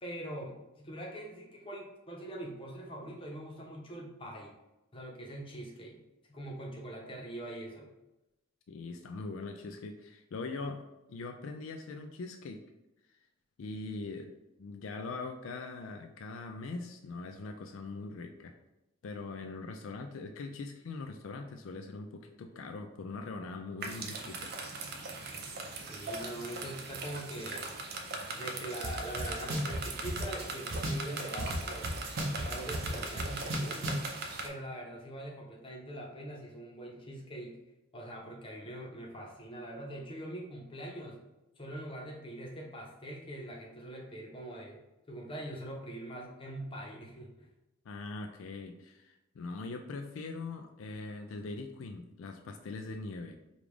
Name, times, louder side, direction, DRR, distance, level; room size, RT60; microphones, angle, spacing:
voice 1, 0.0-4.5 4.9-6.0 6.3-7.9 25.9-27.7 28.3-32.0 32.4-34.1 34.4-37.6 37.9-41.2 41.6-44.8 45.1-47.3, right 1 dB, 25° left, -2 dB, 0.8 m, -43 dB
voice 2, 8.7-10.8 11.1-12.6 13.6-14.3 14.6-18.5 19.0-24.5 47.9-53.4, left 3 dB, 75° left, 5 dB, 0.4 m, -41 dB
sound 1, 23.8-34.5, right 3 dB, 50° right, 0.5 m, -40 dB
sound 2, 28.8-28.9 29.2-31.6 31.8-34.1, right 1 dB, 70° right, 0.9 m, -35 dB
5.2 x 2.4 x 3.2 m, 0.95 s
head